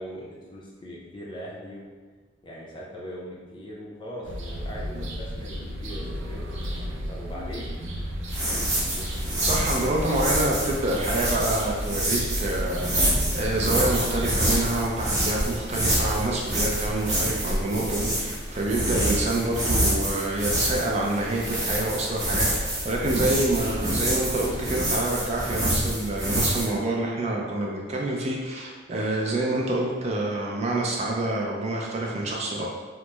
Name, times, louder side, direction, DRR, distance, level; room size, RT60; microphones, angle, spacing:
voice 1, 0.0-1.9 2.4-6.5 7.1-7.7 8.3-9.2 9.8-10.0, equal, 25° left, -4 dB, 0.5 m, -40 dB
sound 1, 4.2-14.7, equal, 90° right, 0.5 m, -33 dB
sound 2, 8.3-26.7, right 1 dB, 15° right, 0.9 m, -27 dB
voice 2, 9.4-32.7, right 2 dB, 35° right, -2 dB, 0.3 m, -27 dB
2.9 x 2.1 x 3.2 m, 1.4 s
head